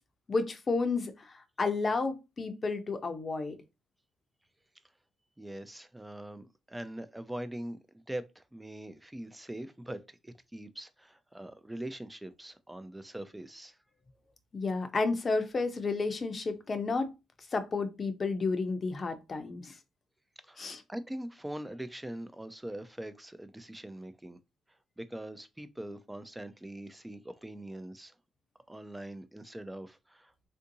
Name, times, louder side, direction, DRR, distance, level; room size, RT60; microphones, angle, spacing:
voice 1, 0.3-3.6 14.5-17.1 17.5-19.7 20.6-20.8, left 3 dB, 35° left, 0.6 m, -31 dB
voice 2, 5.4-13.8 20.4-24.4 25.0-28.1 28.7-30.3, right 1 dB, 10° right, 0.4 m, -42 dB
3.5 x 2.6 x 2.7 m
cardioid pair, 90°, 0 cm